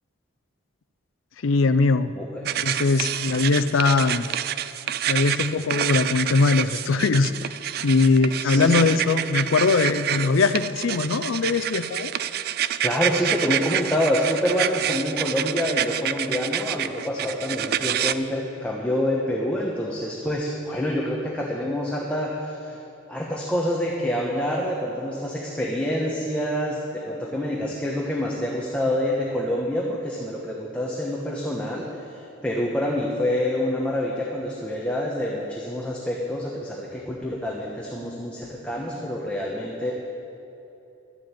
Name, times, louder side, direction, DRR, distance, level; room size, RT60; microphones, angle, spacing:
voice 1, 1.4-2.1 2.6-4.3 5.1-7.3 7.8-12.1, left 4 dB, 85° left, 12 dB, 0.5 m, -21 dB
sound 1, 2.5-18.1, right 10 dB, 50° right, 0.3 m, -28 dB
voice 2, 8.4-8.9 12.8-22.8 23.1-39.9, left 1 dB, 5° left, -4 dB, 1.1 m, -27 dB
12.5 x 7.6 x 9.0 m, 2.8 s
head